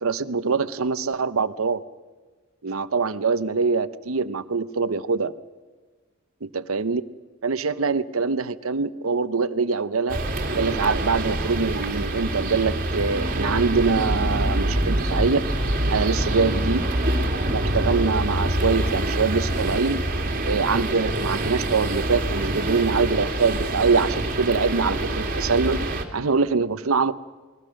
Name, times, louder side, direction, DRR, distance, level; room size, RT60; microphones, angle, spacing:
voice 1, 0.0-1.8 2.6-5.3 6.4-7.0 7.4-10.2 10.5-15.4 15.9-16.8 17.5-20.0 20.4-25.8 26.1-27.1, right 4 dB, 85° right, 14 dB, 0.8 m, -24 dB
sound 1, 10.1-26.0, right 1 dB, 45° right, 2.4 m, -25 dB
28.5 x 21.0 x 6.4 m, 1.4 s
head